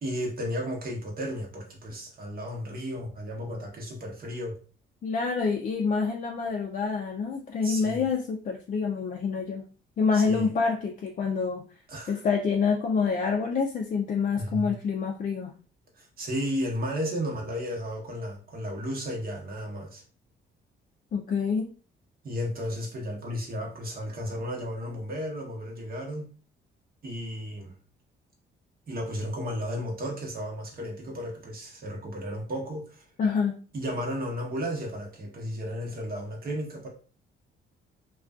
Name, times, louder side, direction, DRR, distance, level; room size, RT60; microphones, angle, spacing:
voice 1, 0.0-4.6 7.6-8.1 10.1-10.6 11.9-12.2 14.4-14.7 15.9-20.0 22.2-26.2 27.0-27.7 28.9-33.1 33.7-36.9, equal, 50° right, -1 dB, 1.0 m, -34 dB
voice 2, 5.0-9.6 10.0-11.6 12.1-15.5 21.1-21.7 33.2-33.5, left 5 dB, 45° left, 1 dB, 0.4 m, -27 dB
2.4 x 2.3 x 2.3 m, 0.39 s
cardioid pair, 90°, 20 cm